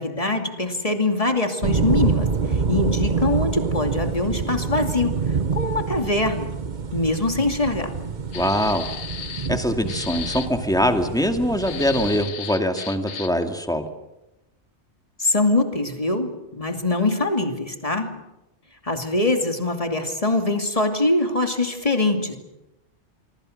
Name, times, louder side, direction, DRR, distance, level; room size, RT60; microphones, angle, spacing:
voice 1, 0.0-5.2 5.5-6.5 6.9-7.9 15.2-18.1 18.8-22.4, left 2 dB, 30° left, 5 dB, 2.6 m, -23 dB
sound 1, 1.6-12.2, right 5 dB, 45° right, 1.2 m, -26 dB
sound 2, 8.3-9.6 9.9-10.5 11.6-13.4, left 7 dB, 90° left, 1.4 m, -34 dB
voice 2, 8.3-8.9 9.5-13.9, equal, 5° left, 5 dB, 2.2 m, -23 dB
25.5 x 24.5 x 6.6 m, 0.94 s
omnidirectional pair, 1.1 m